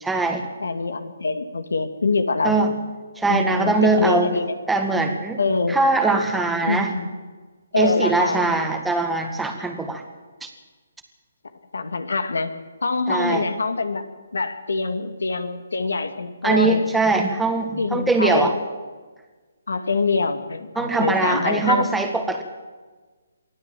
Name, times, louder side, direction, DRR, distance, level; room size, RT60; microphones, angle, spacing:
voice 1, 0.0-0.5 2.4-2.7 3.2-4.4 4.7-5.4 5.7-7.0 7.8-10.0 10.4-10.5 13.1-13.5 16.4-18.5 20.8-22.4, right 3 dB, 5° right, 3 dB, 1.8 m, -21 dB
voice 2, 0.6-2.6 3.3-4.6 5.4-5.8 6.6-7.1 7.7-8.5 11.7-12.5 12.8-14.0 14.3-16.8 17.8-18.5 19.7-21.9, left 3 dB, 75° left, 9 dB, 2.2 m, -24 dB
24.0 x 15.5 x 7.6 m, 1.3 s
figure-of-eight pair, 145°, 0 cm